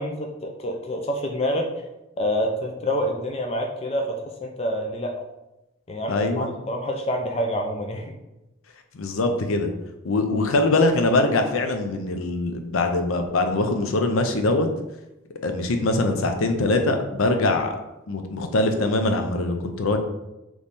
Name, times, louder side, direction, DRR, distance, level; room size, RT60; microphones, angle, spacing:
voice 1, 0.0-1.7 2.2-5.1 5.9-8.1, equal, 30° left, 2 dB, 0.4 m, -27 dB
voice 2, 6.1-6.5 8.9-9.7 10.0-14.7 15.4-17.8 18.1-20.0, left 2 dB, 80° left, 5 dB, 0.6 m, -22 dB
3.5 x 3.1 x 4.1 m, 0.95 s
head